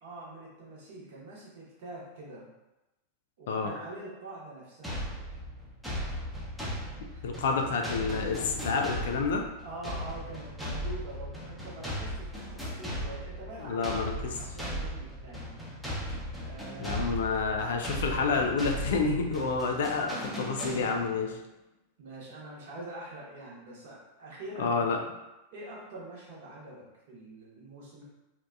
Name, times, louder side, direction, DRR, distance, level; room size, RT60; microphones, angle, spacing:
voice 1, 0.0-2.5 3.4-5.1 7.1-7.2 9.6-15.5 16.4-17.1 22.0-25.0 25.5-28.0, right 1 dB, 55° right, -5 dB, 0.9 m, -45 dB
sound 1, 4.8-21.3, equal, ahead, 0.6 m, -37 dB
voice 2, 7.2-9.4 13.6-14.3 16.8-21.3 24.6-25.0, left 4 dB, 60° left, 3 dB, 0.3 m, -29 dB
2.7 x 2.1 x 2.3 m, 0.98 s
figure-of-eight pair, 90°, 0 cm